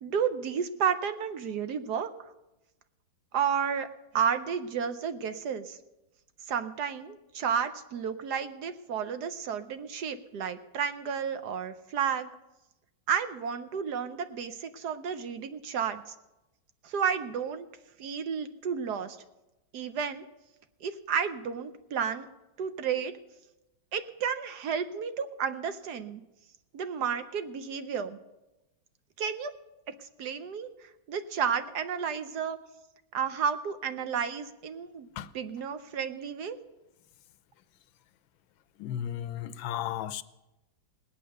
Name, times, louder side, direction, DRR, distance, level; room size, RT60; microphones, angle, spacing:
voice 1, 0.0-2.1 3.3-3.9 4.1-5.8 6.5-12.3 13.1-16.0 16.8-17.7 18.0-19.2 19.7-20.2 20.8-22.3 22.6-23.1 23.9-26.2 26.7-28.2 29.2-29.5 29.9-30.7 31.1-32.6 33.1-36.6, right 7 dB, 65° right, 1.2 m, -32 dB
voice 2, 38.8-40.2, left 11 dB, 85° left, 1.4 m, -34 dB
19.0 x 8.7 x 6.6 m
omnidirectional pair, 2.1 m